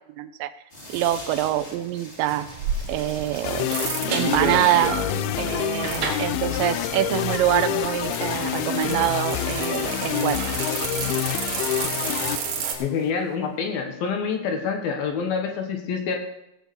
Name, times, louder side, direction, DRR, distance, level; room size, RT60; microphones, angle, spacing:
voice 1, 0.2-0.5 0.9-2.5 2.9-3.7 4.1-5.0 5.4-10.4 10.9-11.1, right 13 dB, 85° right, 12 dB, 2.9 m, -25 dB
sound 1, 0.7-8.1, left 1 dB, 25° left, 1.4 m, -44 dB
sound 2, 2.3-12.7, right 7 dB, 65° right, 2.9 m, -31 dB
sound 3, 3.4-13.1, left 13 dB, 90° left, 2.1 m, -27 dB
voice 2, 12.8-16.2, left 6 dB, 70° left, 4 dB, 2.7 m, -27 dB
16.0 x 6.2 x 6.9 m, 0.88 s
omnidirectional pair, 5.0 m